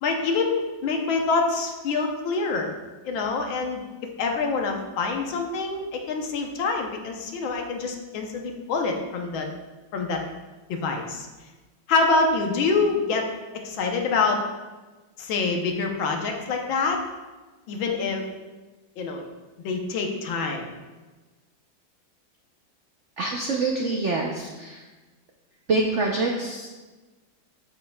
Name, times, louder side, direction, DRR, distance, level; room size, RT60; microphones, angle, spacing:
voice 1, 0.0-2.7 3.0-3.9 4.2-9.5 9.9-10.2 10.7-11.3 11.9-13.3 13.6-14.4 15.2-17.0 17.7-18.2 19.0-19.3 19.6-20.7, left 4 dB, 75° left, 2 dB, 1.6 m, -26 dB
voice 2, 23.2-24.8 25.7-26.7, right 3 dB, 80° right, 0 dB, 0.6 m, -26 dB
8.1 x 7.3 x 2.3 m, 1.2 s
omnidirectional pair, 2.2 m